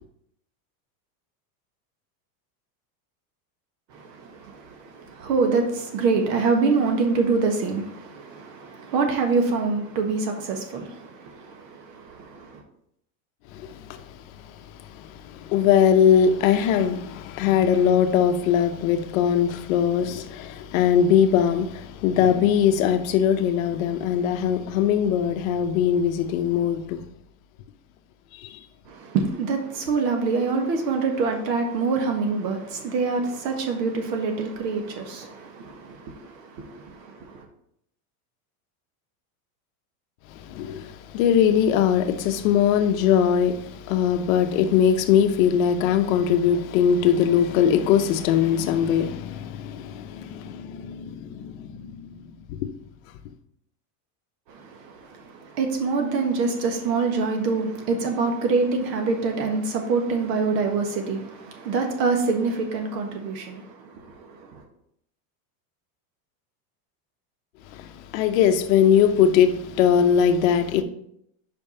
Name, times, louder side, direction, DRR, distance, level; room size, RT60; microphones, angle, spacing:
voice 1, 3.9-12.6 28.9-37.4 54.5-64.6, right 4 dB, 90° right, 1.7 m, -26 dB
voice 2, 13.5-27.0 28.3-28.6 40.4-52.2 67.7-70.8, left 8 dB, 55° left, 0.8 m, -21 dB
5.3 x 5.2 x 5.5 m
supercardioid pair, 175°, 49 cm